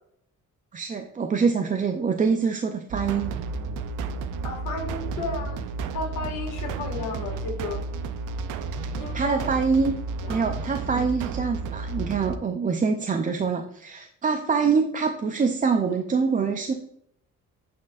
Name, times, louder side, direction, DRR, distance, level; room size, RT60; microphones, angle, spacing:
voice 1, 0.7-3.3 8.8-10.0 10.3-16.7, right 5 dB, 25° right, 5 dB, 0.5 m, -25 dB
sound 1, 2.9-12.4, right 4 dB, 85° right, 0.6 m, -32 dB
voice 2, 4.4-5.6 5.9-7.8 8.9-9.5 10.2-10.4, left 3 dB, 85° left, 1 dB, 1.8 m, -33 dB
9.3 x 4.3 x 2.4 m, 0.69 s
cardioid pair, 90°, 30 cm